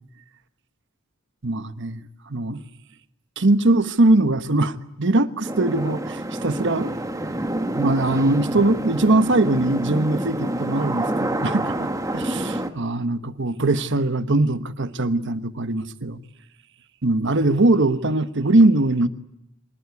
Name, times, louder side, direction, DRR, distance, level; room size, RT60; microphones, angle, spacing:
voice 1, 1.4-2.0 2.3-2.6 3.4-6.9 7.8-16.2 17.0-19.1, right 2 dB, 60° right, 1.2 m, -21 dB
sound 1, 5.4-12.7, right 1 dB, 15° right, 1.5 m, -27 dB
25.0 x 20.5 x 9.5 m
head